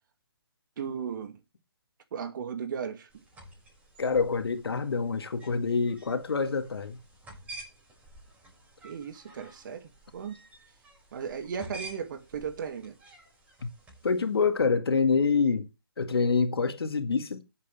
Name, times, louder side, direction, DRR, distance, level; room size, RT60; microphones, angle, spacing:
voice 1, 0.8-1.4 2.1-3.2 8.8-10.4 11.1-13.0, right 7 dB, 55° right, 2.4 m, -36 dB
sound 1, 3.1-14.4, right 2 dB, 10° right, 6.3 m, -50 dB
voice 2, 4.0-7.0 13.6-13.7 14.0-15.7 16.0-17.4, left 5 dB, 80° left, 2.0 m, -26 dB
19.0 x 8.3 x 3.5 m
hypercardioid pair, 145°, 13 cm